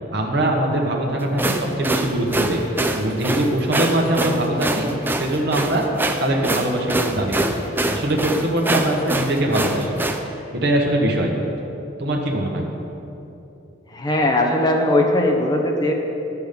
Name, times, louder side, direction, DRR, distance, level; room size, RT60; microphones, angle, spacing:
voice 1, 0.1-2.6 2.9-4.9 5.2-5.8 6.2-7.6 7.9-9.9 10.5-11.3 12.0-12.7, right 1 dB, 60° right, 0 dB, 1.3 m, -22 dB
sound 1, 1.2-10.2, right 2 dB, 10° right, 0.5 m, -24 dB
voice 2, 13.9-15.9, left 1 dB, 20° left, 1 dB, 1.0 m, -19 dB
10.0 x 7.2 x 5.3 m, 2.9 s
head